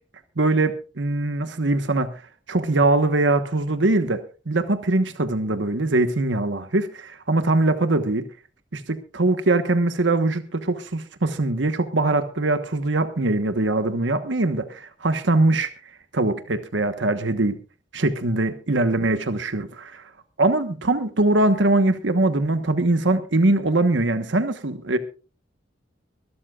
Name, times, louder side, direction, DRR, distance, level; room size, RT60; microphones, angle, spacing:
voice 1, 0.4-2.1 2.5-8.2 8.7-15.7 16.1-17.6 17.9-20.0 20.4-25.0, right 2 dB, 75° right, 9 dB, 1.2 m, -22 dB
24.0 x 13.0 x 2.4 m, 0.34 s
head